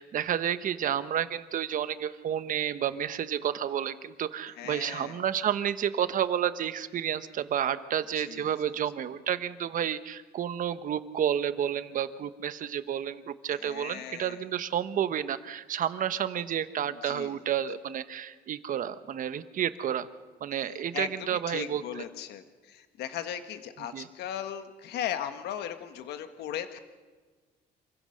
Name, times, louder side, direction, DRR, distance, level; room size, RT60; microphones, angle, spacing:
voice 1, 0.0-20.1 20.4-22.0 23.9-24.1, right 9 dB, 55° right, 12 dB, 1.1 m, -30 dB
voice 2, 4.6-5.2 8.1-8.7 13.5-14.4 16.8-17.5 20.7-26.8, left 10 dB, 75° left, 9 dB, 1.5 m, -38 dB
27.0 x 16.0 x 6.5 m, 1.4 s
cardioid pair, 110°, 17 cm